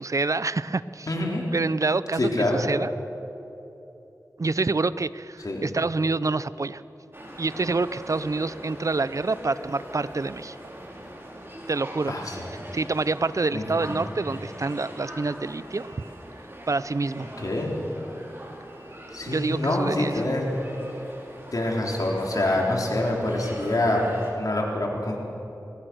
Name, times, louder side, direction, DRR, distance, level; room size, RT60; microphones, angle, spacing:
voice 1, 0.0-1.1 1.5-2.9 4.4-6.8 7.4-10.6 11.7-12.1 12.7-16.1 16.7-17.3 19.3-20.1, right 3 dB, 50° right, 16 dB, 0.6 m, -27 dB
voice 2, 1.1-1.4 2.2-2.6 5.4-5.6 12.1-12.5 13.5-13.9 17.4-17.7 19.1-20.5 21.5-25.2, left 1 dB, 60° left, -1 dB, 3.9 m, -26 dB
sound 1, 7.1-24.3, equal, 35° right, 4.0 m, -41 dB
22.0 x 18.5 x 6.2 m, 3.0 s
wide cardioid pair, 45°, 7 cm